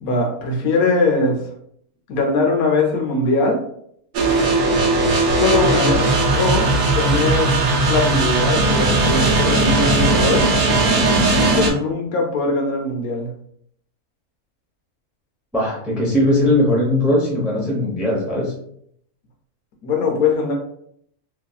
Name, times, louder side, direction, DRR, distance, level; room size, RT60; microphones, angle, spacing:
voice 1, 0.0-1.4 2.1-3.6 5.4-6.1 6.4-7.6 7.9-10.5 11.6-13.3 19.8-20.6, left 3 dB, 75° left, 1 dB, 1.1 m, -21 dB
sound 1, 4.1-11.7, right 2 dB, 75° right, 1.1 m, -17 dB
voice 2, 15.5-18.5, left 1 dB, ahead, -4 dB, 0.4 m, -19 dB
2.9 x 2.6 x 2.3 m, 0.69 s
omnidirectional pair, 1.6 m